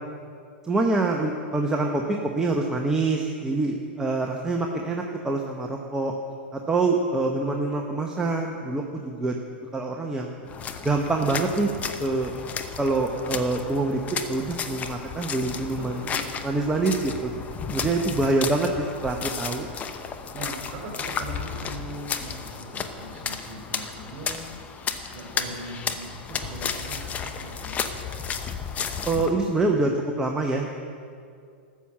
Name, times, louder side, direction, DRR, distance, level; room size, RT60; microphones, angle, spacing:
voice 1, 0.6-6.1 6.5-9.3 9.7-10.3 10.8-11.7 12.0-12.3 12.8-14.0 14.3-16.0 16.4-17.3 17.7-19.7 29.1-30.7, right 2 dB, 10° right, 1 dB, 1.0 m, -25 dB
sound 1, 10.5-29.3, left 6 dB, 25° left, 0.8 m, -33 dB
voice 2, 15.8-16.3 17.7-18.4 20.3-24.4 24.7-24.8 25.1-28.0, right 2 dB, 40° right, -3 dB, 2.8 m, -40 dB
13.0 x 7.1 x 7.5 m, 2.4 s
hypercardioid pair, 105°, 6 cm